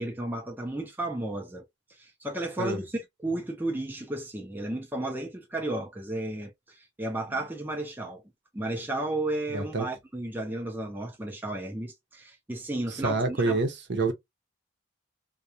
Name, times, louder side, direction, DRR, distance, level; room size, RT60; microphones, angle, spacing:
voice 1, 0.0-1.6 1.9-8.2 8.5-13.6, right 1 dB, 10° right, 0.5 m, -33 dB
voice 2, 9.5-9.8 13.0-14.1, right 3 dB, 60° right, 0.7 m, -27 dB
2.3 x 2.2 x 2.6 m
head